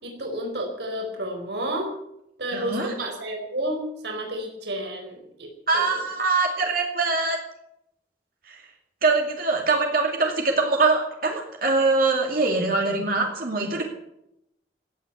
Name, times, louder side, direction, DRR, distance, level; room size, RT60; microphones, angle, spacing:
voice 1, 0.0-1.9 2.4-5.5 5.7-6.0, right 1 dB, 75° right, 2 dB, 4.4 m, -31 dB
voice 2, 2.5-2.9 5.7-7.4 8.5-8.6 9.0-13.8, right 3 dB, 55° right, 1 dB, 2.5 m, -23 dB
16.5 x 9.0 x 9.1 m, 0.81 s
head